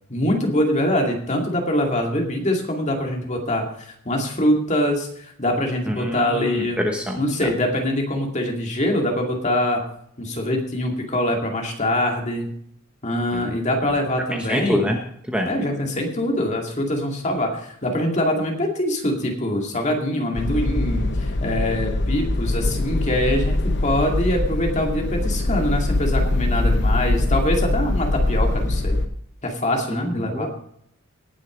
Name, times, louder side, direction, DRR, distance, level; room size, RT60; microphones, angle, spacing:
voice 1, 0.1-6.8 7.2-9.8 10.2-12.5 13.0-14.8 15.5-23.6 23.8-29.0 29.4-30.5, left 1 dB, 35° left, 2 dB, 2.3 m, -24 dB
voice 2, 5.9-7.2 13.3-13.4 14.5-15.0 15.3-15.5 29.9-30.5, equal, 5° right, 2 dB, 1.0 m, -25 dB
sound 1, 20.3-29.1, left 2 dB, 55° left, 0.9 m, -22 dB
18.5 x 6.4 x 5.1 m, 0.70 s
head